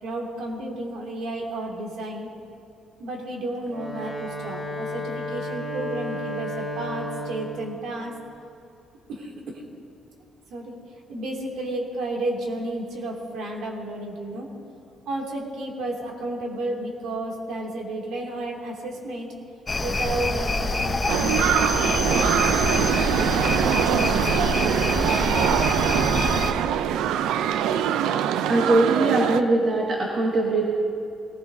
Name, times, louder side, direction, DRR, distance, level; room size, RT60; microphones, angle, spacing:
voice 1, 0.0-2.3 3.0-8.2 9.1-9.6 10.5-10.8 11.1-14.5 15.1-19.3 19.8-25.2, right 1 dB, 70° right, -1 dB, 2.5 m, -32 dB
Wind instrument woodwind instrument, 3.5-7.8, left 1 dB, 10° right, 1.9 m, -32 dB
sound 1, 19.7-26.5, left 2 dB, 20° left, 0.8 m, -26 dB
sound 2, 21.1-29.4, right 9 dB, 85° right, 0.4 m, -23 dB
voice 2, 28.5-30.7, right 2 dB, 50° right, -3 dB, 1.8 m, -21 dB
20.0 x 15.5 x 2.7 m, 2.6 s
cardioid pair, 145°, 0 cm